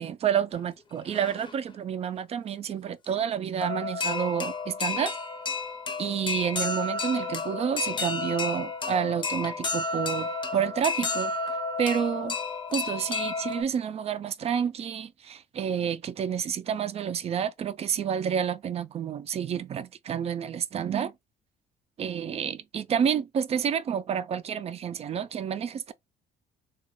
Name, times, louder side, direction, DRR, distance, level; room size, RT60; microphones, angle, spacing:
voice 1, 0.0-5.1 6.0-11.3 11.8-12.4 12.7-21.1 22.0-25.9, right 8 dB, 40° right, 0.4 m, -29 dB
sound 1, 0.5-0.6 1.0-1.7 3.0-3.1 3.6-13.6, left 4 dB, 30° left, 0.6 m, -31 dB
3.0 x 2.3 x 2.9 m
cardioid pair, 110°, 17 cm